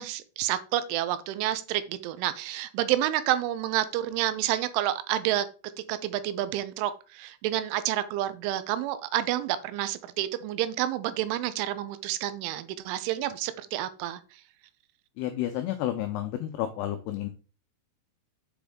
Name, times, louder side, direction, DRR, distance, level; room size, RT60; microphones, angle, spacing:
voice 1, 0.0-5.5 5.9-14.4, right 13 dB, 85° right, 3.1 m, -29 dB
voice 2, 15.2-17.3, left 12 dB, 90° left, 2.3 m, -31 dB
7.2 x 5.1 x 3.5 m
omnidirectional pair, 5.5 m